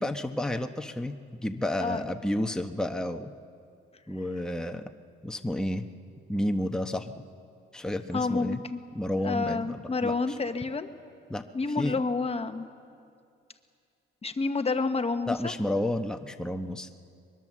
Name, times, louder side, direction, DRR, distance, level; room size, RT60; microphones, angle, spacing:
voice 1, 0.0-3.3 4.1-4.8 5.2-5.9 6.3-7.1 7.7-8.6 8.9-10.4 11.3-11.4 11.8-11.9 15.3-17.0, left 1 dB, 5° left, 5 dB, 1.1 m, -31 dB
voice 2, 8.1-8.8 9.2-10.9 11.5-12.7 14.2-15.5, left 3 dB, 30° left, 8 dB, 1.1 m, -29 dB
23.5 x 22.0 x 7.5 m, 2.4 s
cardioid pair, 90°, 20 cm